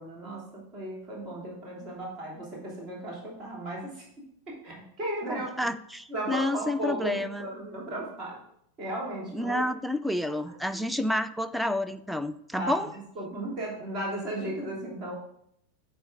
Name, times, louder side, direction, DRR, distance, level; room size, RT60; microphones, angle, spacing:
voice 1, 0.0-4.0 4.5-5.5 6.1-8.4 8.8-9.6 10.3-10.4 10.7-10.8 12.5-15.1, right 1 dB, 35° right, -3 dB, 2.7 m, -35 dB
voice 2, 5.3-7.5 9.3-12.9, left 1 dB, ahead, 11 dB, 0.4 m, -30 dB
9.6 x 4.3 x 3.7 m, 0.72 s
figure-of-eight pair, 90°, 0 cm